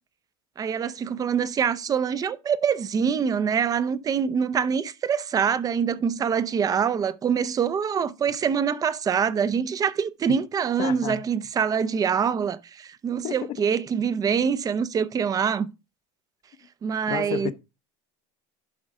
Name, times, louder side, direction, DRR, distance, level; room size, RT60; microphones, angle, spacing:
voice 1, 0.6-15.7 16.8-17.5, right 7 dB, 25° right, 0.6 m, -25 dB
voice 2, 10.8-11.2 13.2-13.6 17.1-17.5, left 11 dB, 50° left, 0.8 m, -31 dB
11.5 x 4.8 x 3.7 m
supercardioid pair, 120°, 13 cm